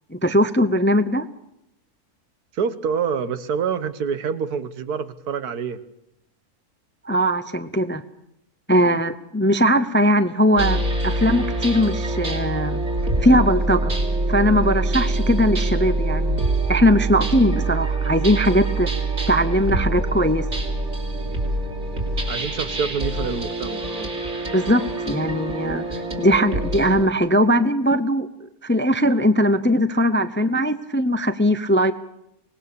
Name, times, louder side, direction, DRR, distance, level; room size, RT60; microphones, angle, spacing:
voice 1, 0.1-1.3 7.0-8.0 8.7-12.8 13.2-13.9 14.3-16.4 16.7-18.9 19.3-20.5 24.4-28.3 28.6-31.9, equal, 15° left, 11 dB, 0.5 m, -20 dB
voice 2, 2.5-5.8 22.3-24.1, right 6 dB, 85° right, 12 dB, 1.6 m, -26 dB
sound 1, 10.6-27.1, right 2 dB, 50° right, 3.6 m, -25 dB
25.0 x 19.5 x 6.9 m, 0.80 s
omnidirectional pair, 1.6 m